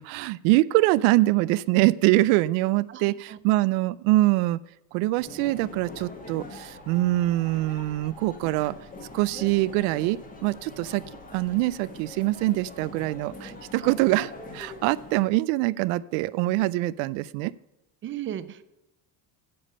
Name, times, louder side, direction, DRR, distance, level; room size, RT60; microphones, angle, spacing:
voice 1, 0.0-4.6 4.9-8.7 9.1-11.0 11.3-17.5, right 18 dB, 85° right, 18 dB, 0.6 m, -24 dB
sound 1, 5.2-15.2, left 2 dB, 15° left, 1.5 m, -43 dB
voice 2, 18.0-18.6, right 11 dB, 25° right, 14 dB, 0.4 m, -34 dB
10.5 x 7.1 x 5.4 m, 0.98 s
cardioid pair, 160°, 47 cm